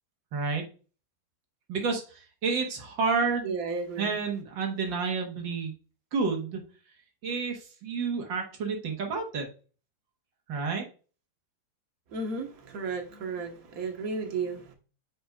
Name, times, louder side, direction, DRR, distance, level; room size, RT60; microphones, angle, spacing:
voice 1, 0.3-0.6 1.7-2.0 2.4-3.5 4.0-5.7 6.1-6.6 7.2-9.5 10.5-10.8, right 4 dB, 80° right, 3 dB, 2.1 m, -29 dB
voice 2, 3.4-4.2 12.1-14.7, right 4 dB, 50° right, 2 dB, 1.7 m, -33 dB
8.6 x 5.2 x 2.4 m, 0.37 s
omnidirectional pair, 2.0 m